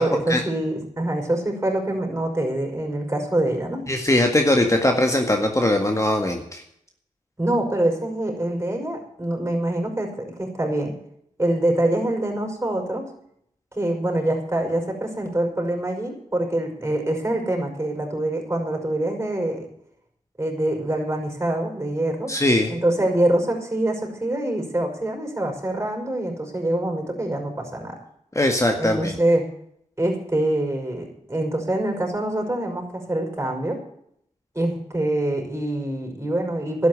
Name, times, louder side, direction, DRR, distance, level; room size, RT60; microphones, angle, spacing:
voice 1, 0.0-3.9 7.4-10.9 11.4-13.1 13.7-19.7 20.4-22.3 22.7-28.0 28.8-29.4 30.0-33.8 34.5-36.9, right 1 dB, 20° right, 2 dB, 5.6 m, -25 dB
voice 2, 3.9-6.6 22.3-22.7 28.4-29.1, left 1 dB, 25° left, 3 dB, 1.8 m, -20 dB
11.5 x 8.7 x 9.5 m, 0.71 s
cardioid pair, 55°, 13 cm